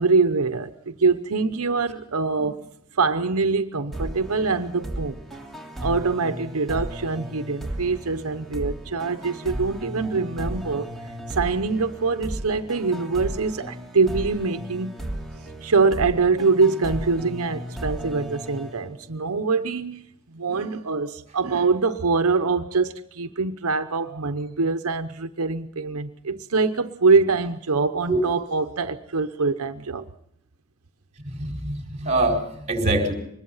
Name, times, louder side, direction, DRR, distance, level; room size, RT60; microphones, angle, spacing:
voice 1, 0.0-2.6 2.9-5.2 5.8-10.9 11.3-14.9 15.6-20.0 20.3-30.1, right 4 dB, 90° right, 0.9 m, -24 dB
sound 1, 3.9-19.4, right 1 dB, ahead, 3.0 m, -35 dB
voice 2, 31.4-33.1, right 2 dB, 30° right, 4.6 m, -24 dB
24.5 x 21.0 x 5.6 m
head